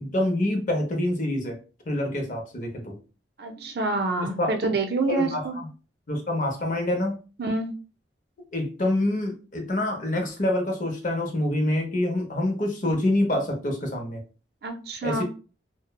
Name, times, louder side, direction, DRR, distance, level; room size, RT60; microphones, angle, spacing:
voice 1, 0.0-1.6 1.9-2.9 4.4-4.5 5.1-5.4 6.1-7.1 8.5-14.2 15.0-15.2, left 1 dB, 45° left, 2 dB, 0.6 m, -26 dB
voice 2, 3.4-5.6 7.4-7.7 14.6-15.2, right 2 dB, 55° right, 4 dB, 0.4 m, -27 dB
2.9 x 2.0 x 2.2 m, 0.35 s
head